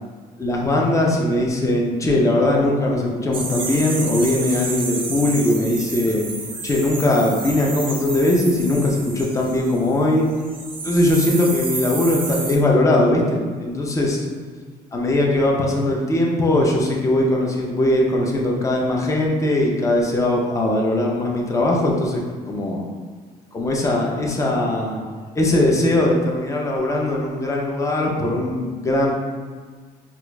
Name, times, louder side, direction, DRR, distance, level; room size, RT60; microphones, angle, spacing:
voice 1, 0.4-6.2 6.6-10.2 10.8-14.2 14.9-22.2 22.5-22.8 23.5-25.0 25.3-29.1, left 1 dB, 20° left, -1 dB, 0.5 m, -20 dB
sound 1, 3.3-10.0 10.3-12.6, right 4 dB, 30° right, 0.5 m, -31 dB
4.2 x 2.4 x 2.3 m, 1.5 s
cardioid pair, 110°, 17 cm